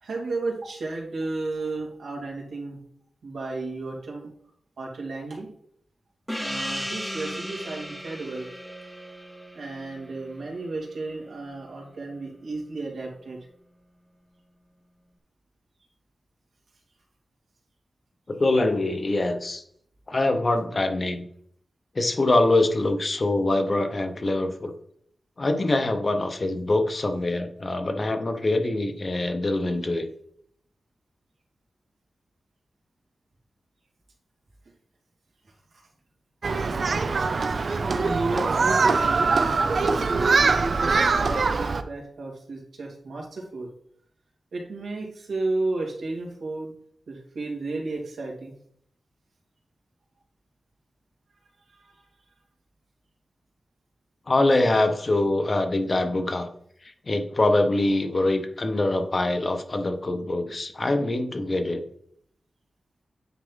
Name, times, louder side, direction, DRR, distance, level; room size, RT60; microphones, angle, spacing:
voice 1, 0.0-2.8 3.2-4.3 4.8-5.5 6.4-8.5 9.5-13.4 37.8-43.7 44.5-46.7 47.1-48.5 51.7-52.1, right 2 dB, 85° right, -2 dB, 2.3 m, -33 dB
Gong, 6.3-11.3, equal, 5° left, 0.7 m, -36 dB
voice 2, 18.3-19.6 20.1-21.3 21.9-24.7 25.4-30.1 54.3-56.5 56.8-61.8, left 2 dB, 35° left, 6 dB, 0.9 m, -24 dB
Human group actions, 36.4-41.8, right 4 dB, 55° right, 0.5 m, -23 dB
9.2 x 4.5 x 4.0 m, 0.66 s
wide cardioid pair, 120°, 0 cm